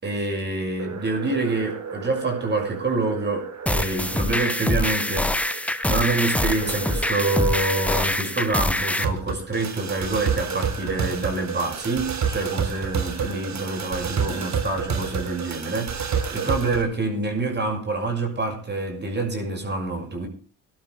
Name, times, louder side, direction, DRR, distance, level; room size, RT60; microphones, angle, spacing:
voice 1, 0.0-20.3, right 2 dB, 30° right, 6.6 m, -27 dB
sound 1, 0.8-16.8, right 6 dB, 55° right, 3.5 m, -31 dB
sound 2, 3.7-9.0, left 1 dB, 5° left, 1.2 m, -24 dB
19.5 x 12.0 x 3.5 m
cardioid pair, 90°, 33 cm